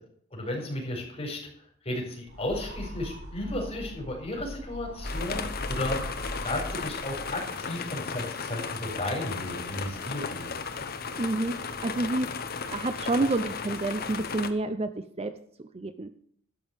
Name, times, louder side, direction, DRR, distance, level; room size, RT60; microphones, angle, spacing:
voice 1, 0.3-1.4 1.8-6.0 6.3-10.5, left 1 dB, 30° left, 0 dB, 4.7 m, -34 dB
sound 1, 2.3-7.6, equal, 80° right, 4.0 m, -39 dB
sound 2, 5.0-14.5, left 5 dB, 50° left, 0.9 m, -35 dB
voice 2, 11.2-12.3 12.7-15.3 15.7-16.1, right 2 dB, 30° right, 11 dB, 0.6 m, -29 dB
12.5 x 5.5 x 8.0 m, 0.63 s
head